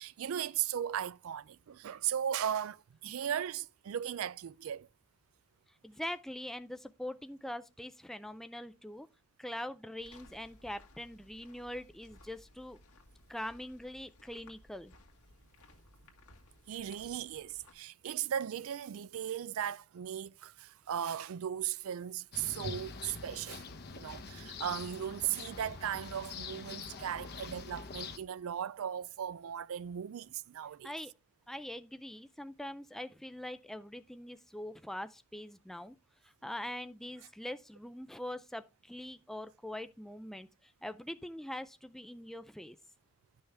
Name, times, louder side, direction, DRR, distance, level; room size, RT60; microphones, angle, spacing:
voice 1, 0.0-4.9 16.7-23.6 23.9-30.9, right 9 dB, 70° right, 0.4 m, -37 dB
voice 2, 5.8-9.1 9.4-12.8 13.3-15.0 30.8-31.1 31.5-36.0 36.2-42.8, left 1 dB, ahead, 0.3 m, -43 dB
sound 1, 10.0-17.7, left 2 dB, 75° left, 1.7 m, -60 dB
sound 2, 22.3-28.2, left 4 dB, 45° left, 0.9 m, -44 dB
11.5 x 5.6 x 3.3 m
head